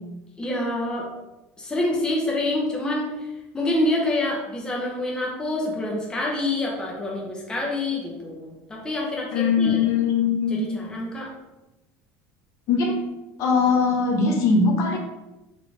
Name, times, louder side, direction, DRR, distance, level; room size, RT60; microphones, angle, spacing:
voice 1, 0.4-1.1 1.6-9.8 10.5-11.3, left 1 dB, 10° left, -3 dB, 0.8 m, -27 dB
voice 2, 9.3-10.6 12.7-13.0 13.4-15.0, left 4 dB, 50° left, 1 dB, 0.8 m, -21 dB
4.2 x 3.2 x 3.2 m, 1.0 s
cardioid pair, 155°, 7 cm